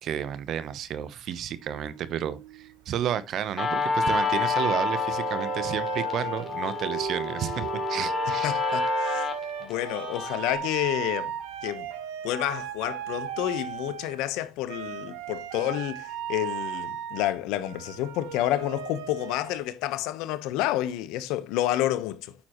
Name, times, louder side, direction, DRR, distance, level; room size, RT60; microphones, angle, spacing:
voice 1, 0.0-8.6, right 9 dB, 60° right, 0.9 m, -32 dB
sound 1, 1.6-2.8 4.1-14.4 14.7-19.6, right 10 dB, 90° right, 1.1 m, -36 dB
Guitar, 3.6-10.6, left 4 dB, 30° left, 2.8 m, -29 dB
voice 2, 8.4-9.3 9.6-11.3 11.6-11.9 12.2-22.3, left 14 dB, 80° left, 1.1 m, -29 dB
9.3 x 7.2 x 3.1 m
supercardioid pair, 80°, 0 cm